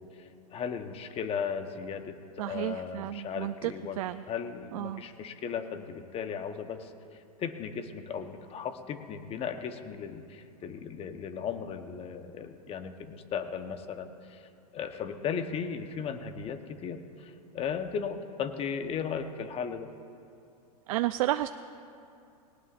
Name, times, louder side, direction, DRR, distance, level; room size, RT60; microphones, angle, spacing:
voice 1, 0.0-4.0 4.3-19.9, left 7 dB, 30° left, 8 dB, 1.0 m, -36 dB
voice 2, 2.4-4.2 4.7-5.0 20.9-21.5, right 15 dB, 60° right, 11 dB, 0.4 m, -32 dB
20.0 x 18.0 x 2.5 m, 2.6 s
hypercardioid pair, 110°, 20 cm